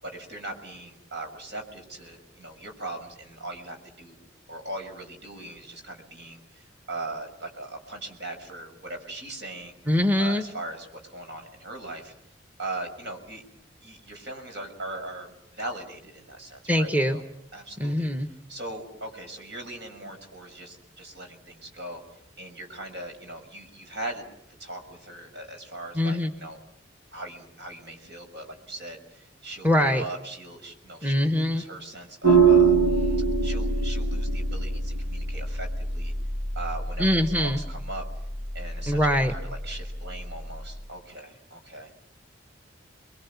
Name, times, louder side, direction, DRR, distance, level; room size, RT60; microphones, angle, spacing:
voice 1, 0.0-4.2 4.5-9.7 10.2-12.1 12.6-13.4 13.8-17.2 17.5-18.1 18.5-22.0 22.4-24.2 24.6-26.6 27.1-36.1 36.6-37.1 37.4-38.0 38.5-42.0, right 2 dB, 65° right, 5 dB, 6.1 m, -39 dB
voice 2, 9.9-10.4 16.7-17.2 17.8-18.3 25.9-26.3 29.6-30.0 31.0-31.6 37.0-37.6 38.9-39.3, left 1 dB, 10° right, 7 dB, 1.3 m, -23 dB
sound 1, 32.2-40.8, right 4 dB, 80° right, 7.3 m, -25 dB
30.0 x 22.5 x 7.2 m, 0.78 s
head